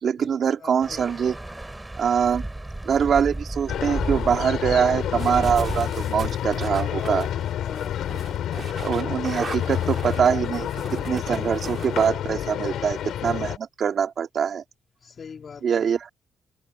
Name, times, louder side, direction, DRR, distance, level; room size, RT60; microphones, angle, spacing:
voice 1, 0.0-1.4 2.0-2.5 2.8-7.3 8.6-10.7 11.1-14.6 15.6-16.1, right 7 dB, 55° right, 2.7 m, -23 dB
voice 2, 0.6-1.3 7.6-8.2 15.0-15.9, left 6 dB, 45° left, 3.6 m, -43 dB
sound 1, 0.8-5.8, right 1 dB, 10° right, 4.5 m, -33 dB
sound 2, 3.7-13.6, left 11 dB, 75° left, 6.3 m, -29 dB
sound 3, 5.2-12.1, right 5 dB, 40° right, 3.0 m, -38 dB
cardioid pair, 90°, 0 cm